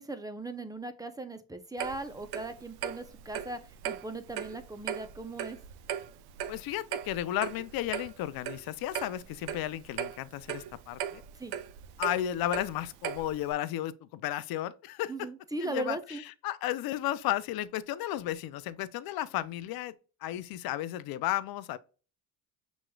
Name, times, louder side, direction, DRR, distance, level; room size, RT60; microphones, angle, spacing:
voice 1, 0.0-3.6 3.8-5.6 11.4-11.5 15.1-16.2, right 2 dB, 10° right, 0.6 m, -38 dB
Clock, 1.8-13.5, right 9 dB, 65° right, 0.6 m, -39 dB
voice 2, 6.5-11.2 12.0-15.1 15.6-19.9 20.2-21.8, left 13 dB, 60° left, 0.5 m, -33 dB
6.2 x 3.0 x 2.3 m
cardioid pair, 100°, 42 cm